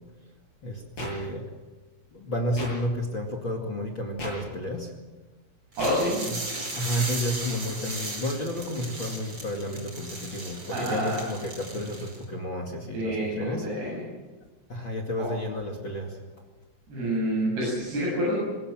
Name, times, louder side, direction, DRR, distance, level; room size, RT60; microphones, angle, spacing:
voice 1, 0.6-1.5 2.1-4.9 6.3-6.4 6.7-13.9 14.7-16.2, equal, 40° left, 2 dB, 1.8 m, -31 dB
sound 1, 1.0-1.1 2.6-2.7 4.2-4.3 5.8-5.9, equal, 20° left, 8.3 m, -34 dB
sound 2, 5.7-12.2, right 2 dB, 25° right, 5.5 m, -37 dB
voice 2, 5.8-6.2 10.7-11.2 12.9-14.0 15.2-15.3 16.9-18.4, equal, 55° right, -6 dB, 9.8 m, -27 dB
24.0 x 21.0 x 7.7 m, 1.3 s
omnidirectional pair, 5.7 m